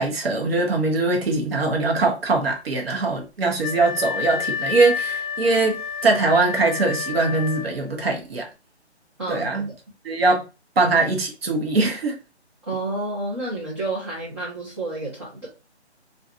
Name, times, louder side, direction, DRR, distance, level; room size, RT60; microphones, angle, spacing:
voice 1, 0.0-8.5 9.3-9.7 10.0-10.4 10.8-12.2, right 3 dB, 60° right, 0.9 m, -22 dB
Wind instrument woodwind instrument, 3.6-8.0, left 6 dB, 45° left, 0.7 m, -29 dB
voice 2, 12.7-15.5, right 2 dB, 25° right, 0.7 m, -29 dB
2.7 x 2.4 x 2.4 m
figure-of-eight pair, 150°, 34 cm